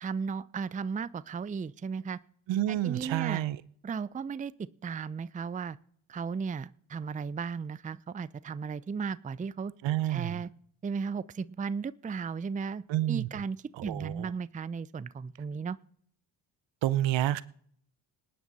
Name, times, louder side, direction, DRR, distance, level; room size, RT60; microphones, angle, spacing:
voice 1, 0.0-2.2 2.7-3.4 3.8-4.5 4.8-5.8 6.1-9.7 10.1-10.5 10.8-13.6 13.8-15.8, right 5 dB, 15° right, 18 dB, 0.5 m, -35 dB
voice 2, 2.5-3.6 9.8-10.4 12.9-13.3 13.8-14.3 16.8-17.4, right 14 dB, 65° right, 19 dB, 0.7 m, -29 dB
19.0 x 9.6 x 4.1 m, 0.63 s
supercardioid pair, 55°, 47 cm